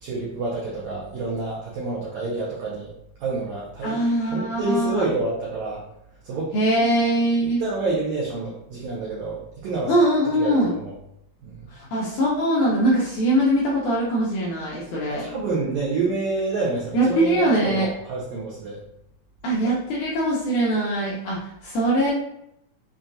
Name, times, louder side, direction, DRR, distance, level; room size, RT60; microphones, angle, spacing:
voice 1, 0.0-2.9 3.2-4.0 4.3-5.8 6.2-6.5 7.6-9.9 10.4-10.9 11.4-11.7 15.2-18.8, right 3 dB, 80° right, -5 dB, 1.6 m, -28 dB
voice 2, 3.8-5.1 6.5-7.6 9.9-10.7 11.7-15.3 16.9-17.9 19.4-22.1, right 1 dB, 75° left, -5 dB, 1.8 m, -22 dB
6.1 x 2.3 x 2.6 m, 0.77 s
omnidirectional pair, 4.2 m